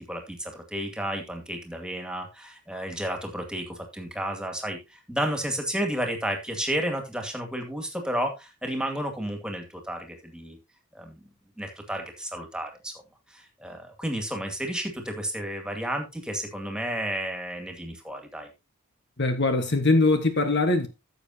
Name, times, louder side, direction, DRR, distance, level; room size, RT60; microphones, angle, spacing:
voice 1, 0.1-10.6 10.9-11.2 11.6-12.9 13.3-18.5, right 1 dB, 5° right, 2.2 m, -32 dB
voice 2, 19.2-20.9, left 2 dB, 55° left, 1.4 m, -22 dB
15.0 x 7.0 x 2.8 m
head